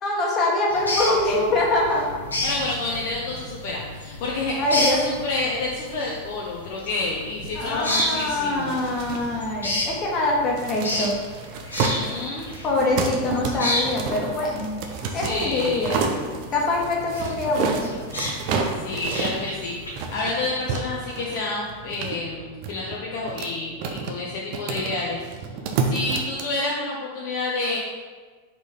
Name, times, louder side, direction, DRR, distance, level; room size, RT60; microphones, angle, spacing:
voice 1, 0.0-2.1 4.6-5.0 7.5-11.1 12.6-14.7 15.1-16.1 16.5-18.0 18.3-18.7, left 2 dB, 30° left, -2 dB, 1.4 m, -24 dB
sound 1, 0.7-20.1, left 1 dB, 75° left, 1.1 m, -32 dB
voice 2, 2.4-8.8 11.8-12.5 15.0-16.2 18.8-19.7 20.1-25.2 25.8-27.8, left 3 dB, 50° left, -3 dB, 0.8 m, -29 dB
sound 2, 7.4-26.4, right 4 dB, 45° right, 0.7 m, -31 dB
4.8 x 4.2 x 5.2 m, 1.5 s
figure-of-eight pair, 90°, 0 cm